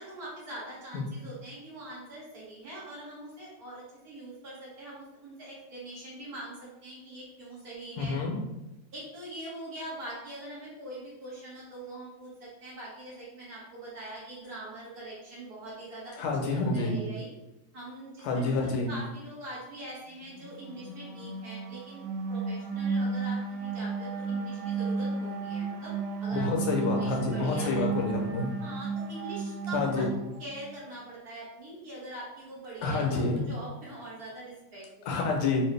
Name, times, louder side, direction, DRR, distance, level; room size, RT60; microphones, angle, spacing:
voice 1, 0.0-6.6 6.8-8.2 8.9-16.1 16.5-17.3 17.7-25.9 26.2-26.5 26.8-27.9 28.6-30.1 30.4-35.5, right 1 dB, 50° right, -7 dB, 1.1 m, -43 dB
voice 2, 8.0-8.3 16.2-17.0 18.2-18.9 26.3-28.5 29.7-30.1 32.8-33.4 35.1-35.7, left 3 dB, 75° left, 0 dB, 2.0 m, -28 dB
sound 1, 20.2-30.8, right 4 dB, 85° right, 1.9 m, -33 dB
4.6 x 2.6 x 3.2 m, 0.97 s
omnidirectional pair, 3.3 m